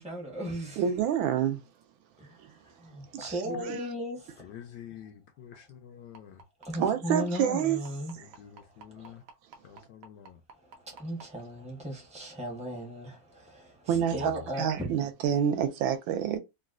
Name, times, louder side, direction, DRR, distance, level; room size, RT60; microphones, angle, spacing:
voice 1, 0.0-0.9 2.2-4.5 6.6-9.2 9.6-9.8 10.5-14.9, equal, 5° right, 0.5 m, -37 dB
voice 2, 0.8-1.6 2.4-2.5 3.1-3.8 6.8-7.8 13.9-14.3 14.6-16.4, right 8 dB, 80° right, 1.4 m, -28 dB
voice 3, 4.4-6.4 8.2-9.2 9.6-10.4 13.9-14.4, left 9 dB, 75° left, 1.0 m, -48 dB
sound 1, 6.1-11.2 12.3-12.4 12.8-12.9 13.4-13.5, right 4 dB, 60° right, 0.9 m, -49 dB
3.9 x 2.2 x 2.4 m
omnidirectional pair, 2.2 m